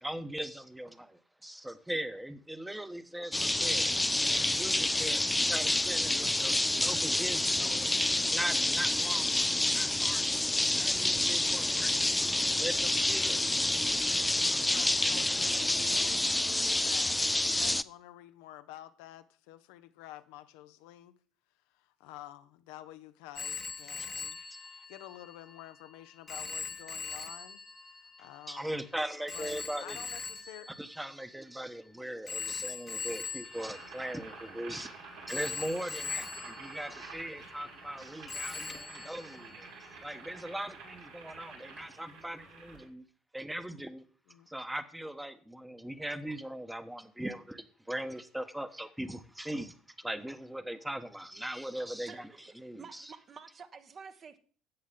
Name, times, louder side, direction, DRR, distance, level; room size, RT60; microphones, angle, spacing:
voice 1, 0.0-3.9 4.2-7.9 8.2-9.4 9.7-10.4 10.7-12.0 12.2-14.6 24.4-24.5 28.5-30.0 30.8-39.7 40.0-43.0 43.3-44.0 44.5-52.3 52.6-53.1, right 1 dB, 5° right, 1.1 m, -40 dB
sound 1, 3.3-17.8, left 1 dB, 10° left, 0.4 m, -28 dB
voice 2, 14.7-21.2 21.7-24.4 24.9-29.0 29.3-30.7 44.3-44.5, left 14 dB, 70° left, 0.6 m, -50 dB
Telephone, 23.4-31.7 32.3-34.8 35.3-38.0 38.3-40.0, left 4 dB, 25° left, 1.0 m, -42 dB
Boiling, 33.4-42.9, right 4 dB, 75° right, 3.3 m, -49 dB
voice 3, 52.1-54.4, right 6 dB, 40° right, 1.2 m, -50 dB
13.5 x 8.4 x 3.7 m
hypercardioid pair, 60°, 0 cm